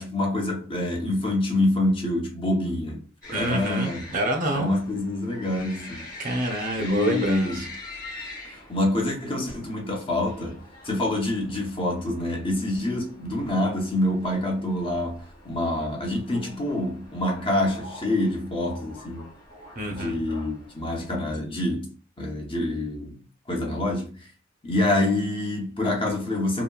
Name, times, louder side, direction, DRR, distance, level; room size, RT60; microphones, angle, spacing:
voice 1, 0.0-3.0 3.3-4.1 4.5-6.1 6.8-7.7 8.5-19.3 19.9-23.2 23.5-24.3 24.6-26.6, left 1 dB, 25° left, 0.7 m, -26 dB
sound 1, 3.2-21.4, left 2 dB, 45° left, 1.1 m, -44 dB
voice 2, 3.3-4.7 6.2-7.7 19.8-20.2, right 1 dB, 45° right, 0.6 m, -27 dB
2.8 x 2.7 x 2.3 m
head